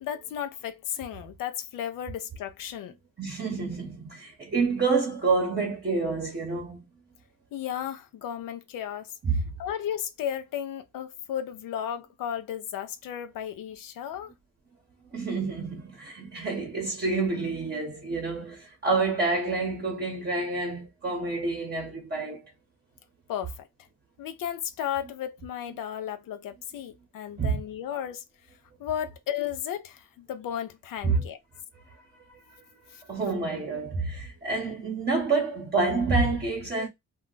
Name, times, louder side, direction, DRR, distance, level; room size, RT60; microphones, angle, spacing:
voice 1, 0.0-2.9 7.5-14.3 23.3-23.7 24.2-28.2 28.8-31.4 32.9-33.0, left 10 dB, 85° left, 0.5 m, -34 dB
voice 2, 3.2-6.8 9.2-9.4 15.1-22.4 27.4-27.6 31.0-31.3 33.1-36.9, right 4 dB, 30° right, 0.9 m, -28 dB
2.3 x 2.1 x 3.8 m
cardioid pair, 105°, 32 cm